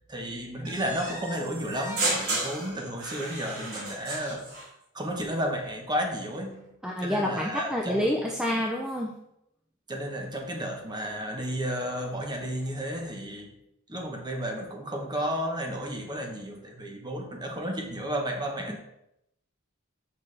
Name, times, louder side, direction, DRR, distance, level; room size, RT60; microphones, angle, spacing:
voice 1, 0.1-4.5 4.9-6.7 7.0-8.1 9.9-13.5 13.9-18.8, equal, 20° right, 2 dB, 1.1 m, -32 dB
sound 1, 0.6-4.7, right 2 dB, 85° right, 2.6 m, -33 dB
voice 2, 6.8-9.1 18.7-18.8, equal, 5° right, -1 dB, 0.5 m, -28 dB
6.5 x 5.6 x 3.3 m, 0.80 s
head